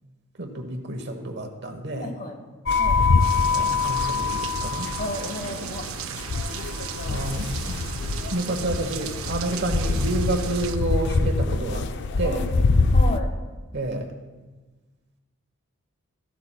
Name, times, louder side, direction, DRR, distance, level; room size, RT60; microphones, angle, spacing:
voice 1, 0.4-2.1 3.5-4.9 7.1-7.8 8.3-11.9 12.2-12.4 13.7-14.1, right 1 dB, 50° right, 5 dB, 1.1 m, -29 dB
voice 2, 2.0-2.4 2.8-3.0 5.0-5.9 12.2-12.4 12.9-13.3, left 1 dB, 35° left, 4 dB, 1.1 m, -32 dB
sound 1, 2.7-13.2, left 3 dB, 55° left, 0.4 m, -24 dB
sound 2, 3.2-10.8, right 7 dB, 70° right, 0.5 m, -35 dB
15.0 x 11.5 x 2.3 m, 1.3 s
head